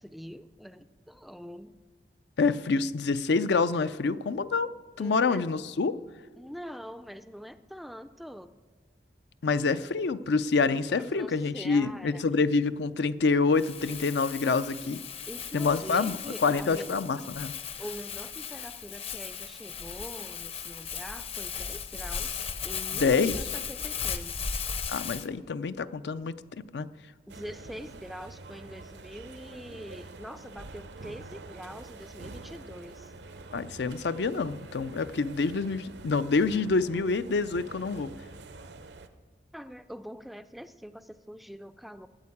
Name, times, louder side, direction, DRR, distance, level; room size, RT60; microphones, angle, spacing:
voice 1, 0.0-1.8 5.0-5.5 6.4-8.5 10.2-10.3 10.9-12.2 14.8-14.9 15.3-16.9 17.8-24.5 27.3-33.1 39.5-42.1, equal, ahead, 11 dB, 0.3 m, -44 dB
voice 2, 2.4-4.7 5.0-5.9 9.4-15.0 15.5-17.5 22.9-23.4 24.9-26.4 26.7-26.9 33.5-38.1, left 4 dB, 75° left, 13 dB, 0.5 m, -27 dB
Crumpling crinkling, 13.6-25.3, left 6 dB, 35° left, 0.6 m, -37 dB
sound 1, 27.3-39.1, right 3 dB, 80° right, 0.8 m, -46 dB
13.0 x 8.5 x 8.4 m, 1.4 s
head